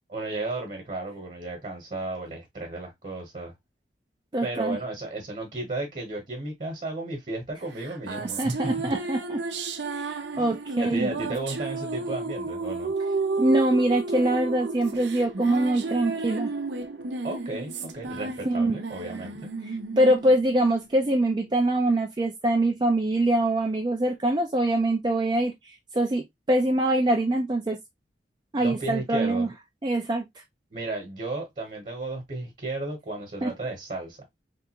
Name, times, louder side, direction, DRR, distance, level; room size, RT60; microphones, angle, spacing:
voice 1, 0.1-3.5 4.4-8.7 10.3-10.5 10.8-12.9 17.2-19.5 28.6-29.5 30.7-34.2, right 2 dB, 40° right, 1.1 m, -34 dB
voice 2, 4.3-4.8 8.2-9.4 9.9-11.1 13.4-16.5 18.4-18.8 19.2-19.3 19.7-27.8 28.5-29.5 29.8-30.3 33.4-33.5, right 1 dB, 25° right, 0.4 m, -24 dB
sound 1, 7.8-21.4, right 3 dB, 80° right, 0.6 m, -32 dB
3.4 x 2.5 x 2.8 m
head